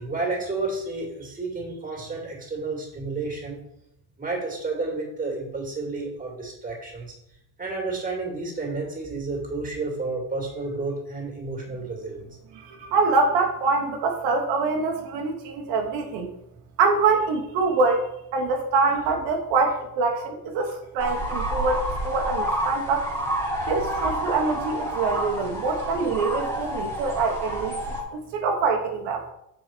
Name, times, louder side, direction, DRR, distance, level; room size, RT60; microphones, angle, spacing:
voice 1, 0.0-3.6 4.2-7.1 7.6-12.3 12.7-12.8 23.6-23.7 24.4-24.5, right 3 dB, 20° right, -1 dB, 2.4 m, -31 dB
voice 2, 12.6-16.3 16.8-23.1 23.7-27.8 28.1-29.2, right 4 dB, 75° right, 2 dB, 1.2 m, -24 dB
sound 1, 21.0-28.0, equal, 5° left, 1.9 m, -29 dB
6.6 x 4.9 x 4.5 m, 0.79 s
cardioid pair, 130°, 45 cm